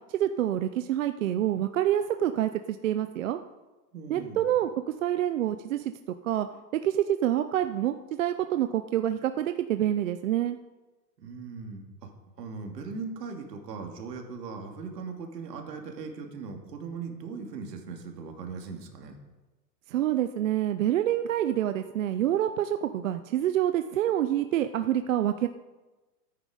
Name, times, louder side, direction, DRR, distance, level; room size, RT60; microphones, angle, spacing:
voice 1, 0.1-3.4 4.1-4.7 5.0-5.9 6.2-6.5 6.7-10.6 19.9-25.5, right 11 dB, 55° right, 9 dB, 0.6 m, -27 dB
voice 2, 3.9-4.5 11.2-12.1 12.4-19.2, right 4 dB, 75° right, 3 dB, 2.6 m, -39 dB
14.0 x 9.6 x 5.0 m, 1.2 s
supercardioid pair, 170°, 49 cm